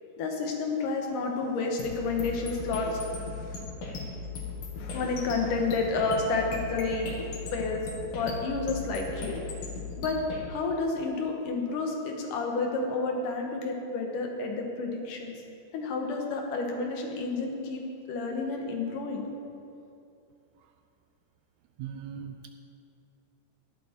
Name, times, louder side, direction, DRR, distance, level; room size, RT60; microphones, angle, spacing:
voice 1, 0.2-3.6 4.8-7.1 7.5-7.8 8.1-9.4 10.0-10.2 10.5-15.4 15.7-17.8 18.1-19.3, left 3 dB, 90° left, 1 dB, 2.9 m, -30 dB
sound 1, 1.8-10.4, left 4 dB, 65° left, 2.9 m, -38 dB
voice 2, 21.8-22.5, right 8 dB, 80° right, 6 dB, 1.7 m, -40 dB
12.0 x 10.5 x 4.4 m, 2.7 s
omnidirectional pair, 3.6 m